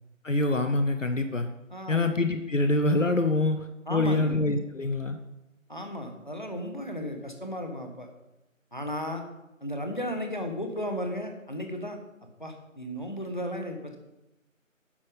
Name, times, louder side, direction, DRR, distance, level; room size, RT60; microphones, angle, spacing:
voice 1, 0.2-1.5 1.9-5.2, left 2 dB, 65° left, 8 dB, 0.9 m, -25 dB
voice 2, 1.7-2.1 3.9-4.4 5.7-8.1 8.7-9.2 9.6-12.0 12.4-14.0, equal, 35° left, 4 dB, 1.2 m, -34 dB
10.5 x 6.6 x 5.1 m, 0.94 s
figure-of-eight pair, 180°, 40 cm